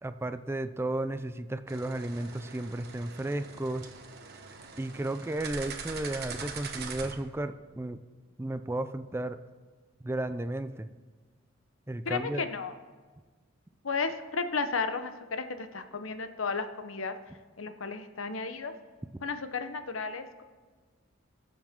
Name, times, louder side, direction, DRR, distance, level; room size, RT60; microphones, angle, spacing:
voice 1, 0.0-3.9 4.8-8.0 8.4-9.4 10.0-10.9 11.9-12.5, right 1 dB, 10° right, 11 dB, 0.4 m, -34 dB
sound 1, 1.7-7.1, right 5 dB, 55° right, 1.3 m, -42 dB
voice 2, 12.1-12.7 13.8-17.2 17.6-18.7 19.2-20.4, left 4 dB, 80° left, 9 dB, 0.9 m, -33 dB
21.5 x 7.3 x 3.6 m, 1.4 s
head